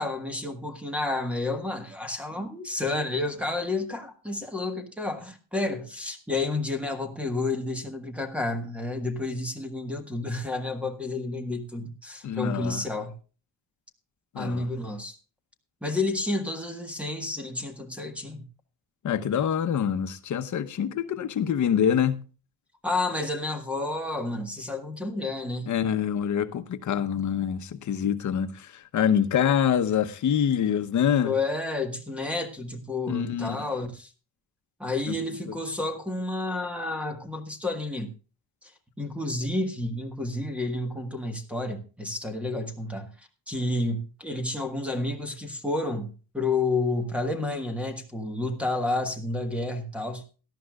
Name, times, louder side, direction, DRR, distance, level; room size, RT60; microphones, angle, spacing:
voice 1, 0.0-13.1 14.3-15.2 15.8-18.5 22.8-25.7 31.2-34.1 34.8-38.1 38.6-38.7 39.0-43.1 43.5-50.2, left 2 dB, 5° right, 1.5 m, -30 dB
voice 2, 12.2-12.8 14.3-14.7 19.0-22.2 25.7-31.3 33.1-33.7 35.1-35.2, left 8 dB, 50° left, 1.0 m, -25 dB
18.0 x 12.5 x 2.4 m
cardioid pair, 160°, 36 cm